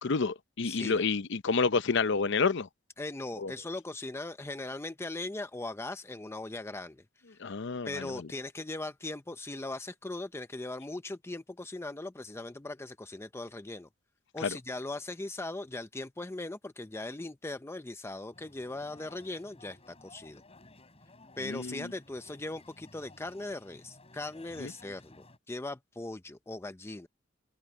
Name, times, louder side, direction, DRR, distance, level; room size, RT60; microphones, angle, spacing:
voice 1, 0.0-2.7 3.4-3.5 7.4-8.3 14.4-14.6 21.4-21.9 24.6-24.7, left 4 dB, 65° left, 0.7 m, -29 dB
voice 2, 0.6-1.0 3.0-7.0 7.3-7.4 7.8-13.9 14.3-20.4 21.4-27.1, left 2 dB, 15° left, 0.5 m, -39 dB
sound 1, 18.3-25.4, left 2 dB, 30° left, 6.2 m, -56 dB
head